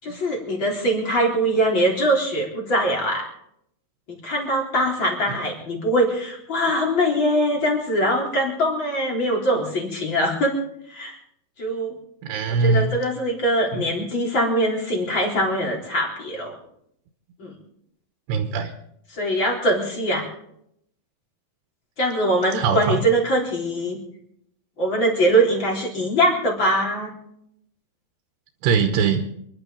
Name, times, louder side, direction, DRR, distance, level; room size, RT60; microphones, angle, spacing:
voice 1, 0.0-3.3 4.2-10.6 10.9-11.2 11.6-12.0 12.6-16.6 17.4-17.5 19.1-20.3 22.0-24.0 24.8-27.1, right 1 dB, 30° left, -1 dB, 4.1 m, -22 dB
voice 2, 12.2-13.0 13.7-13.8 18.3-18.7 22.5-23.0 28.6-29.2, right 5 dB, 80° right, 6 dB, 3.1 m, -21 dB
27.5 x 11.5 x 3.9 m, 0.73 s
omnidirectional pair, 4.8 m